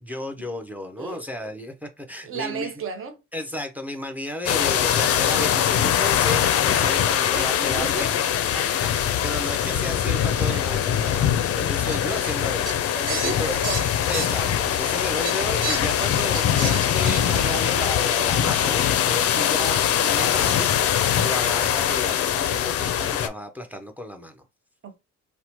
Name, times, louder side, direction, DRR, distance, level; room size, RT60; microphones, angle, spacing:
voice 1, 0.0-2.7 3.3-7.9 8.5-12.6 13.0-13.5 14.1-24.4, left 1 dB, 5° right, 0.5 m, -33 dB
voice 2, 2.2-3.2 7.3-8.2 10.5-10.6 12.9-13.8 19.3-19.6 24.8-25.0, right 4 dB, 45° right, 0.8 m, -33 dB
sound 1, 4.5-23.3, left 9 dB, 50° left, 0.4 m, -22 dB
Fowl, 10.3-10.5 11.0-11.2 11.8-14.9 15.2-17.4, right 5 dB, 90° right, 0.8 m, -34 dB
2.9 x 2.1 x 2.8 m
cardioid pair, 90°, 30 cm